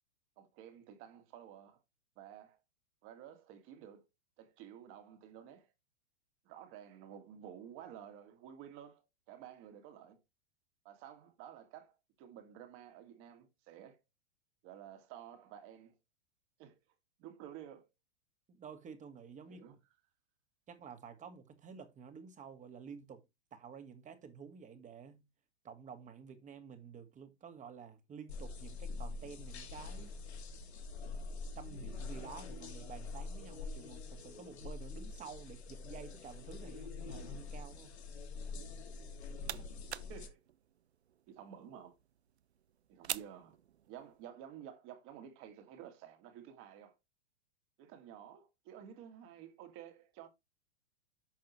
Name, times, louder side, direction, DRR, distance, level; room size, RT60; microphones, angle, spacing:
voice 1, 0.4-1.8 2.2-2.6 3.0-4.0 4.4-5.7 6.4-9.0 9.3-10.2 10.8-14.0 14.6-15.9 16.6-16.8 17.2-17.9 19.5-19.8 40.1-40.4 41.3-42.0 42.9-43.6 43.9-47.0 47.8-50.3, right 10 dB, 40° right, 2.5 m, -52 dB
voice 2, 18.5-19.6 20.7-23.2 23.5-25.2 25.6-30.1 31.6-37.9, right 6 dB, 20° right, 1.9 m, -51 dB
sound 1, 28.3-40.3, left 4 dB, 70° left, 2.6 m, -45 dB
sound 2, 38.9-44.3, right 10 dB, 75° right, 0.7 m, -47 dB
10.5 x 6.5 x 3.1 m
figure-of-eight pair, 105°, 33 cm